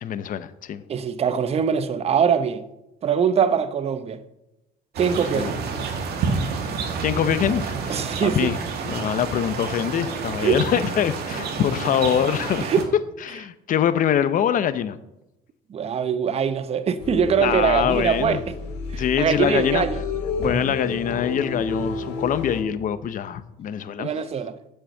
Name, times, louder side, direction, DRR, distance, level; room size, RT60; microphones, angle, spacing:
voice 1, 0.0-0.8 5.3-5.5 7.0-8.6 8.8-12.7 13.2-15.0 17.4-18.4 18.9-19.8 20.4-24.1, left 9 dB, 55° left, 0.8 m, -24 dB
voice 2, 0.9-2.6 3.0-4.2 5.0-5.5 7.9-8.5 10.4-10.6 12.6-12.9 15.7-18.5 18.9-20.0 24.0-24.6, right 7 dB, 35° right, 0.7 m, -22 dB
sound 1, 4.9-12.8, right 5 dB, 70° right, 2.0 m, -29 dB
sound 2, 17.0-22.6, left 3 dB, 85° left, 2.1 m, -30 dB
8.0 x 6.6 x 7.6 m
cardioid pair, 110°, 17 cm